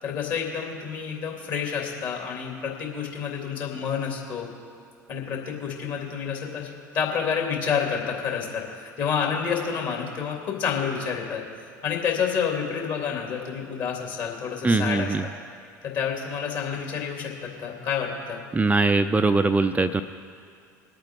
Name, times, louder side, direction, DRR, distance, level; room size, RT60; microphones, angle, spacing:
voice 1, 0.0-4.5 5.1-11.4 11.8-15.3 15.8-18.4, left 7 dB, 50° left, 0 dB, 3.0 m, -29 dB
voice 2, 14.6-15.2 18.5-20.0, right 3 dB, 15° right, 8 dB, 0.5 m, -21 dB
22.0 x 8.7 x 3.8 m, 2.3 s
figure-of-eight pair, 70°, 10 cm